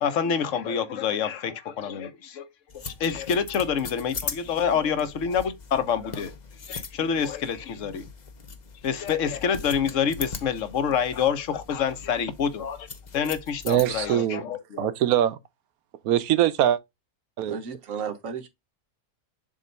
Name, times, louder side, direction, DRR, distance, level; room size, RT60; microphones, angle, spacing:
voice 1, 0.0-2.5 2.7-6.3 6.7-8.1 8.8-12.9 13.1-14.9, left 7 dB, 60° left, 1.2 m, -27 dB
sound 1, 2.7-14.1, left 5 dB, 40° left, 0.7 m, -40 dB
voice 2, 13.6-14.4 14.8-15.4 16.0-16.8 17.4-17.6, right 11 dB, 80° right, 1.1 m, -22 dB
voice 3, 17.5-18.5, right 6 dB, 65° right, 1.5 m, -34 dB
7.4 x 2.5 x 5.2 m
omnidirectional pair, 1.5 m